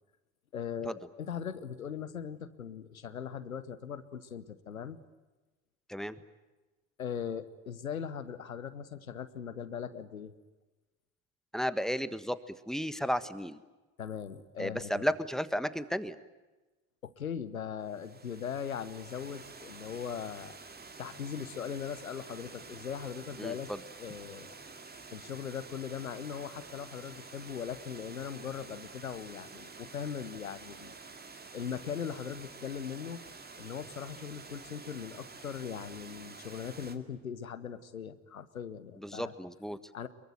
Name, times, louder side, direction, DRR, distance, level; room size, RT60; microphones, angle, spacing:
voice 1, 0.5-5.0 7.0-10.3 14.0-15.1 17.0-20.6 21.0-23.7 24.0-24.6 25.1-30.9 31.5-33.2 33.6-39.3 39.9-40.1, left 7 dB, 90° left, 14 dB, 1.1 m, -39 dB
voice 2, 11.5-13.6 14.6-16.2 23.4-23.5 39.0-39.8, equal, ahead, 13 dB, 1.5 m, -33 dB
Water, 17.8-37.0, right 4 dB, 25° right, 2.3 m, -49 dB
24.0 x 22.5 x 9.4 m, 1.2 s
figure-of-eight pair, 55°, 41 cm